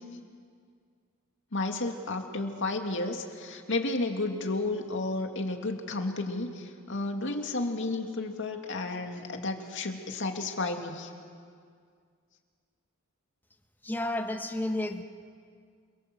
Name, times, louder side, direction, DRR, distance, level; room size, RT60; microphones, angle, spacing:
voice 1, 1.5-11.1, left 2 dB, 60° left, 4 dB, 2.4 m, -32 dB
voice 2, 13.8-15.0, left 1 dB, 10° left, 5 dB, 1.4 m, -31 dB
28.0 x 23.0 x 7.6 m, 2.1 s
head